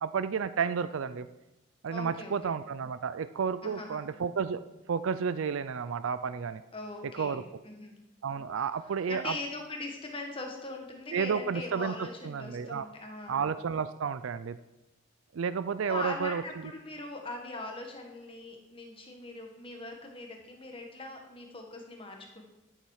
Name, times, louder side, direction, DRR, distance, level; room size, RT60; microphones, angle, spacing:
voice 1, 0.0-1.3 1.8-4.6 4.9-6.6 7.1-7.4 8.2-9.4 11.1-12.9 13.3-14.6 15.3-16.4, right 6 dB, 75° right, 13 dB, 0.4 m, -31 dB
voice 2, 1.9-2.5 3.6-4.0 6.7-7.9 9.1-13.4 15.9-22.4, left 2 dB, 25° left, 2 dB, 1.6 m, -41 dB
13.5 x 7.2 x 4.9 m, 0.99 s
head